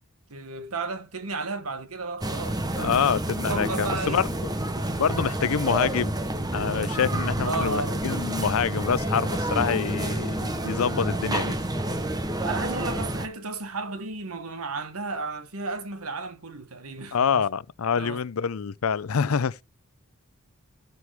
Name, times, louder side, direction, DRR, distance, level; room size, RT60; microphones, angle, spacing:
voice 1, 0.3-3.0 3.5-4.2 7.4-8.2 12.4-17.4 18.0-18.2, right 3 dB, 90° right, 1.4 m, -33 dB
sound 1, 2.2-13.3, right 1 dB, 20° right, 1.0 m, -29 dB
voice 2, 2.8-4.3 5.0-6.1 6.5-11.6 17.1-19.6, left 6 dB, 75° left, 0.5 m, -26 dB
14.5 x 6.3 x 3.5 m
head